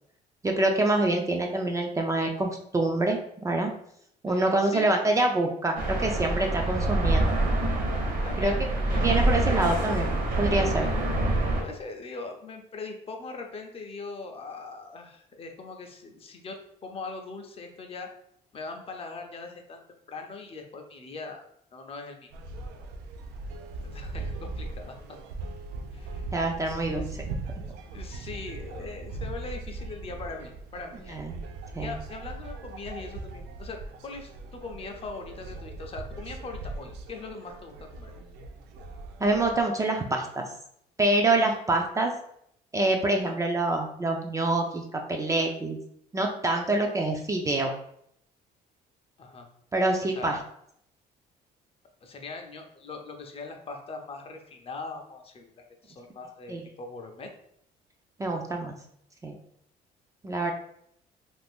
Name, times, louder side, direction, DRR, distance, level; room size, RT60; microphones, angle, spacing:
voice 1, 0.4-3.7 4.2-7.3 8.4-8.7 9.0-10.1 10.4-10.9 26.3-27.1 27.5-27.6 31.1-31.3 31.7-31.9 39.2-40.5 41.0-42.1 42.7-45.8 46.1-47.7 49.7-50.4 56.5-56.6 58.2-58.7 59.2-59.4 60.2-60.5, right 2 dB, 20° right, 2 dB, 0.4 m, -26 dB
voice 2, 4.3-4.9 8.2-9.0 9.5-9.6 10.7-11.0 11.6-16.6 16.8-18.1 18.5-19.8 20.1-21.5 21.7-22.3 23.8-25.0 25.9-26.3 26.9-27.0 27.9-31.2 31.8-38.1 49.2-49.5 50.0-50.4 52.0-57.3, left 3 dB, 35° left, 4 dB, 0.5 m, -41 dB
sound 1, 5.8-11.6, right 1 dB, 50° right, 0.8 m, -26 dB
sound 2, 22.3-39.6, right 3 dB, 90° right, 0.4 m, -39 dB
2.5 x 2.5 x 3.5 m, 0.69 s
cardioid pair, 110°, 17 cm